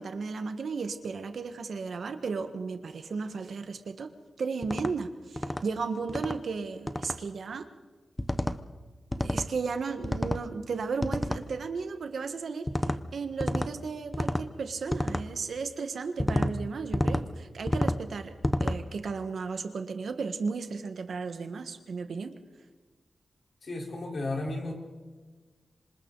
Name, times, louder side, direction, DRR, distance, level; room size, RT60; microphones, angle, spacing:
voice 1, 0.0-4.1 4.4-7.7 9.2-12.7 13.1-18.3 18.6-22.3, right 4 dB, 65° right, 7 dB, 1.5 m, -34 dB
sound 1, 4.6-4.9 5.4-5.6 6.1-6.4 6.9-7.2 8.2-8.6 9.1-9.5 10.0-10.4 11.0-11.4 12.7-13.0 13.4-13.7 14.1-14.5 14.9-15.2 16.2-16.5 16.9-17.2 17.7-18.0 18.4-18.8, left 1 dB, 10° left, 0.7 m, -29 dB
voice 2, 23.6-24.7, left 2 dB, 50° left, 0 dB, 4.1 m, -34 dB
26.5 x 26.0 x 4.0 m, 1.3 s
wide cardioid pair, 165°, 0 cm